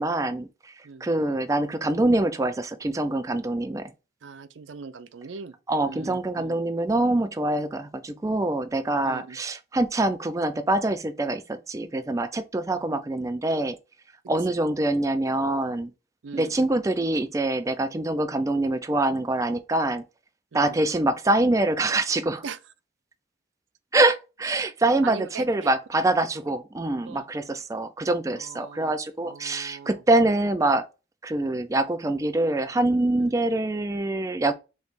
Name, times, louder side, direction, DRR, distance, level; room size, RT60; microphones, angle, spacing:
voice 1, 0.0-0.7 1.0-3.9 5.7-13.8 14.3-15.9 16.3-20.0 20.5-22.4 23.9-30.9 31.2-34.5, right 2 dB, 15° right, 0.4 m, -25 dB
voice 2, 4.2-5.6 5.8-6.6 9.0-9.4 12.7-12.8 14.5-14.6 16.2-16.5 20.5-20.8 22.4-22.6 25.0-25.7 27.0-27.3 28.4-28.9 29.2-30.0 33.2-33.3, right 5 dB, 90° right, 0.5 m, -40 dB
5.0 x 3.2 x 2.5 m
head